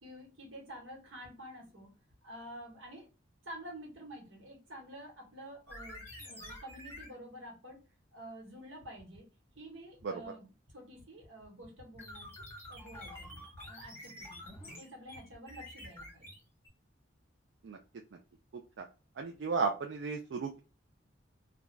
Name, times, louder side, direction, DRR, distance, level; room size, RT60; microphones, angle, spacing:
voice 1, 0.0-1.9 2.2-3.1 3.4-7.8 8.1-9.3 9.5-14.5 14.8-16.3, equal, 85° right, 0 dB, 1.2 m, -49 dB
sound 1, 5.7-7.1 12.0-16.7, left 1 dB, 10° left, 0.8 m, -48 dB
voice 2, 19.2-20.6, right 4 dB, 70° right, 3 dB, 0.4 m, -34 dB
2.5 x 2.2 x 3.0 m, 0.32 s
head